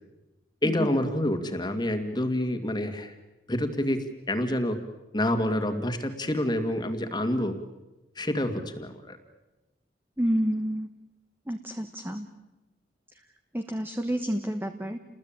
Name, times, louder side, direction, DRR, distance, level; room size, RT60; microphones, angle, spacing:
voice 1, 0.6-3.1 3.5-4.8 5.1-7.6 8.2-9.2, left 1 dB, 25° left, 7 dB, 2.2 m, -28 dB
voice 2, 10.2-10.9 11.5-12.3 13.5-15.0, equal, 10° right, 7 dB, 1.2 m, -29 dB
29.0 x 20.5 x 9.0 m, 1.1 s
head